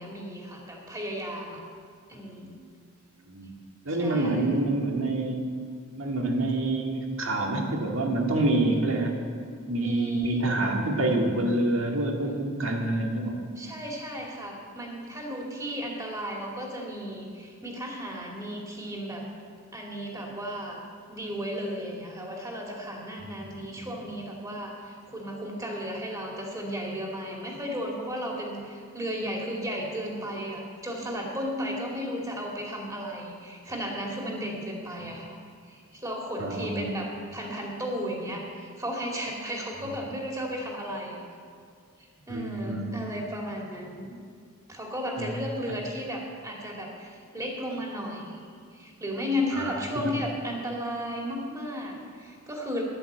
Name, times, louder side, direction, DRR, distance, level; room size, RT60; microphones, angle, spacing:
voice 1, 0.0-1.6 2.1-2.6 3.9-4.5 9.8-10.4 13.6-19.3 19.7-20.8 21.1-35.3 35.6-41.2 42.0-44.2 44.7-48.4 48.7-52.8, equal, 15° right, -1 dB, 2.4 m, -34 dB
voice 2, 3.9-5.4 6.0-9.2 9.7-13.4 23.2-23.3 36.4-36.9 42.3-43.0 45.2-45.3 49.5-50.1, right 2 dB, 65° right, 2 dB, 2.0 m, -27 dB
11.0 x 11.0 x 8.0 m, 2.2 s
head